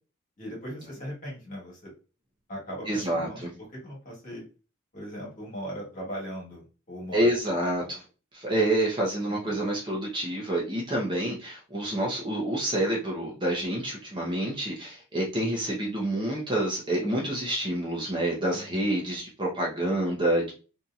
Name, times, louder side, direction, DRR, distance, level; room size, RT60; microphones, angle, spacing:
voice 1, 0.4-1.9 2.5-3.4 3.8-4.4 4.9-7.9 9.3-9.5 18.5-18.9, equal, 35° left, -4 dB, 1.3 m, -39 dB
voice 2, 2.9-3.5 7.1-8.0 8.3-20.5, right 1 dB, 20° right, -3 dB, 0.7 m, -28 dB
2.7 x 2.7 x 2.4 m, 0.35 s
head